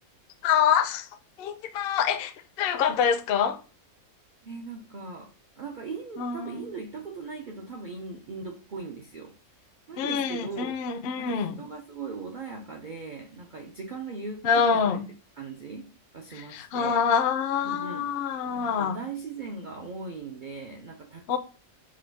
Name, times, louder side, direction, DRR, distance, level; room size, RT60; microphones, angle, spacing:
voice 1, 0.4-1.1 1.4-3.6 6.2-6.7 10.0-11.6 14.4-15.1 16.3-19.0 21.3-21.4, left 7 dB, 65° left, 0.5 m, -26 dB
voice 2, 4.4-9.3 9.9-10.8 11.2-15.0 15.4-17.1 17.6-18.0 18.5-21.4, right 4 dB, 70° right, 0.4 m, -39 dB
4.8 x 2.2 x 4.5 m
omnidirectional pair, 1.6 m